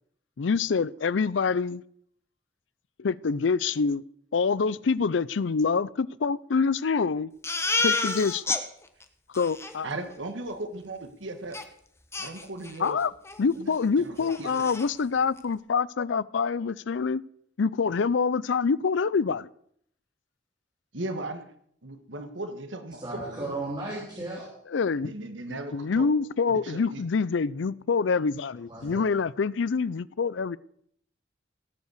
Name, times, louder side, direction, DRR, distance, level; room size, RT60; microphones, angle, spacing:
voice 1, 0.4-1.8 3.0-4.0 4.3-7.3 7.8-8.6 9.3-9.9 12.8-13.1 13.4-17.2 17.6-19.5 24.7-25.1 25.5-30.6, left 5 dB, 80° left, 0.5 m, -26 dB
Crying sobbing, 7.4-8.6 9.0-9.1 9.3-9.7 11.5-11.6 12.1-12.9 13.2-13.4 13.8-13.9 14.2-14.9, left 3 dB, 15° left, 1.1 m, -29 dB
voice 2, 9.8-11.6 12.2-13.0 13.5-13.7 14.0-14.7 20.9-21.5 21.8-23.5 25.0-26.1 26.5-27.0, right 2 dB, 80° right, 1.5 m, -37 dB
voice 3, 22.9-24.5 28.7-29.1, right 2 dB, 25° right, 3.6 m, -35 dB
18.0 x 8.2 x 6.7 m
head